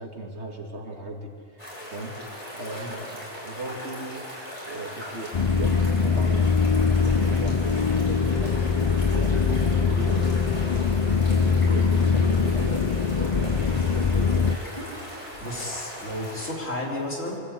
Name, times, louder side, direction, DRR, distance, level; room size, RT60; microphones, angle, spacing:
voice 1, 0.0-2.2 2.5-4.2 4.6-6.5 6.8-8.6 9.1-10.3 10.6-11.0 11.3-14.6, right 2 dB, 60° right, 2 dB, 2.6 m, -37 dB
sound 1, 1.6-16.5, equal, 25° left, 5.6 m, -39 dB
sound 2, 5.3-14.6, left 5 dB, 50° left, 0.4 m, -22 dB
voice 2, 15.4-17.4, left 1 dB, 90° left, -2 dB, 4.0 m, -32 dB
23.5 x 15.5 x 8.4 m, 2.3 s
omnidirectional pair, 1.3 m